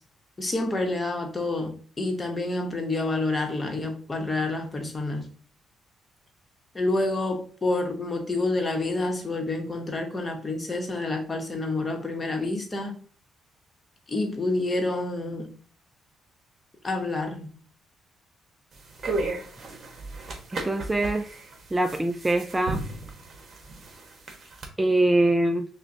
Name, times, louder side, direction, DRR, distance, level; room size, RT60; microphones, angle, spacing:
voice 1, 0.4-5.3 6.7-12.9 14.1-15.5 16.8-17.5, left 2 dB, 25° left, 1.0 m, -28 dB
sound 1, 18.7-24.7, right 2 dB, 45° right, 1.0 m, -35 dB
voice 2, 20.5-21.3 21.7-22.8 24.8-25.7, right 1 dB, 15° right, 0.3 m, -23 dB
6.2 x 2.2 x 2.6 m
cardioid pair, 90°, 0 cm